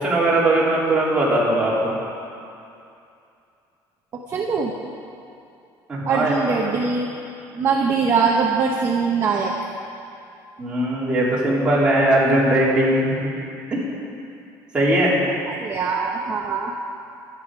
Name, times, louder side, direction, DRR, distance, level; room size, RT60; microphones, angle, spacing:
voice 1, 0.0-2.0 5.9-6.8 10.6-13.3 13.7-13.8 14.7-15.2, right 1 dB, 15° right, -7 dB, 3.5 m, -20 dB
voice 2, 4.3-4.7 6.0-7.1 7.5-9.5 15.5-16.7, right 5 dB, 30° right, -1 dB, 1.1 m, -22 dB
23.5 x 9.4 x 4.9 m, 2.6 s
cardioid pair, 170°, 8 cm